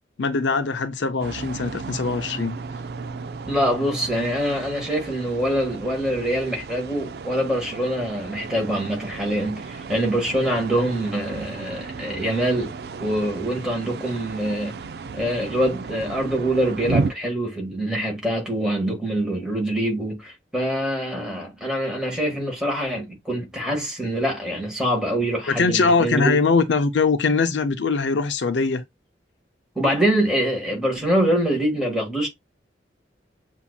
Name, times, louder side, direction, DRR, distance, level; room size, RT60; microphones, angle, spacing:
voice 1, 0.2-2.6 25.5-28.8, left 4 dB, 75° left, 0.5 m, -21 dB
sound 1, 1.2-17.1, right 4 dB, 55° right, 0.4 m, -34 dB
voice 2, 3.5-12.7 13.0-14.7 15.1-26.4 29.7-32.3, right 1 dB, 5° right, 1.5 m, -24 dB
7.1 x 2.6 x 2.2 m
head